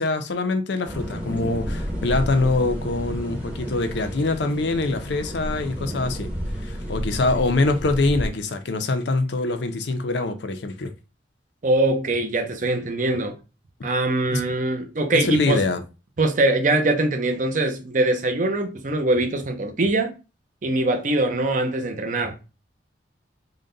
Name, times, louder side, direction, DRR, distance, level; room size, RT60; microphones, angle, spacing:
voice 1, 0.0-6.3 6.6-10.9 14.3-14.4 15.1-15.8, left 3 dB, 65° left, 0.5 m, -24 dB
sound 1, 0.9-8.2, equal, 5° right, 0.8 m, -31 dB
voice 2, 11.6-13.4 13.8-15.6 16.2-20.2 20.6-22.4, right 2 dB, 45° right, 0.6 m, -22 dB
3.8 x 2.2 x 3.8 m
head